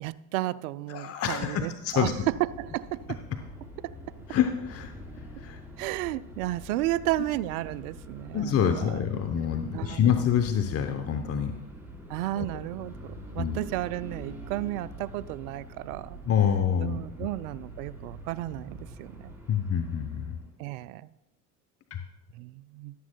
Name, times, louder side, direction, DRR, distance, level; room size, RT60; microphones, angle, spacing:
voice 1, 0.0-2.1 2.4-3.2 3.8-3.9 5.8-9.0 9.7-10.3 12.1-16.2 16.8-19.3 20.6-21.1 22.3-22.9, right 16 dB, 75° right, 17 dB, 0.5 m, -33 dB
voice 2, 0.9-2.1 4.3-4.9 5.4-5.6 8.3-11.5 12.4-12.5 13.4-13.6 16.2-17.0 19.5-20.4 21.9-22.0, left 8 dB, 35° left, 7 dB, 0.8 m, -26 dB
sound 1, 1.8-20.6, equal, 5° right, 3.8 m, -45 dB
14.0 x 11.0 x 2.2 m, 1.0 s
hypercardioid pair, 75°, 44 cm